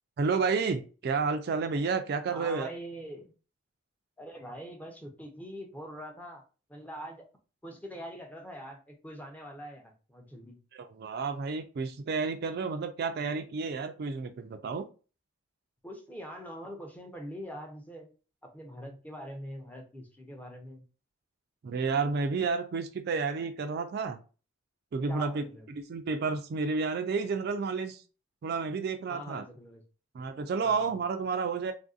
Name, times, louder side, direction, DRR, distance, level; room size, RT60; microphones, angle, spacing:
voice 1, 0.2-2.7 10.7-14.9 21.6-24.2 24.9-25.4 25.9-28.0 28.4-29.4 30.1-31.7, right 4 dB, 50° right, 7 dB, 0.3 m, -31 dB
voice 2, 2.3-3.3 4.2-6.4 6.7-7.2 7.6-10.6 15.8-18.1 18.4-20.8 25.1-25.7 29.1-29.8 30.6-30.9, equal, 10° left, 2 dB, 0.5 m, -43 dB
3.4 x 2.6 x 2.3 m, 0.35 s
head